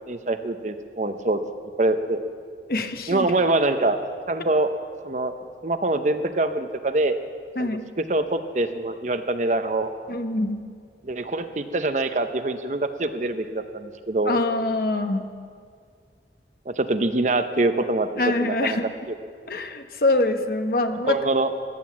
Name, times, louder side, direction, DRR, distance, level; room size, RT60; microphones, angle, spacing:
voice 1, 0.1-1.4 1.8-2.2 3.1-4.0 4.3-4.7 5.0-5.3 5.6-7.2 7.6-9.9 11.0-14.4 16.7-18.1 18.4-18.8 19.1-19.2 21.1-21.5, right 2 dB, 40° right, 8 dB, 0.7 m, -24 dB
voice 2, 2.7-3.3 7.6-7.9 10.1-10.6 14.3-15.3 18.2-18.8 19.5-21.2, left 2 dB, 55° left, 7 dB, 0.9 m, -24 dB
15.5 x 10.5 x 7.4 m, 2.1 s
head